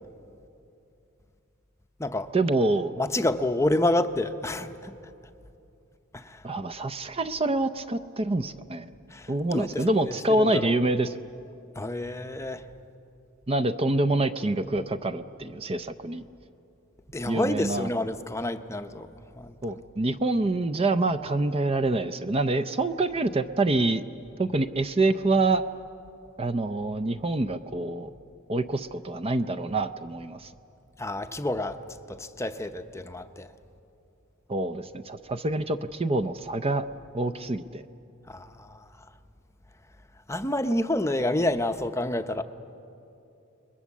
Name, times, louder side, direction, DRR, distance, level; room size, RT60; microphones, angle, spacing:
voice 1, 2.3-2.9 6.4-8.9 9.3-11.2 13.5-16.2 17.2-17.9 19.6-24.0 24.4-25.6 26.4-28.1 28.5-30.5 34.5-36.8 37.1-37.8, right 2 dB, 25° right, 9 dB, 0.5 m, -26 dB
voice 2, 3.0-4.9 6.1-6.4 9.1-10.7 11.8-12.6 17.1-19.1 19.4-19.8 31.0-31.8 32.1-33.5 38.3-38.8 40.3-42.4, left 1 dB, 15° left, 8 dB, 0.7 m, -29 dB
29.5 x 21.5 x 7.3 m, 2.7 s
head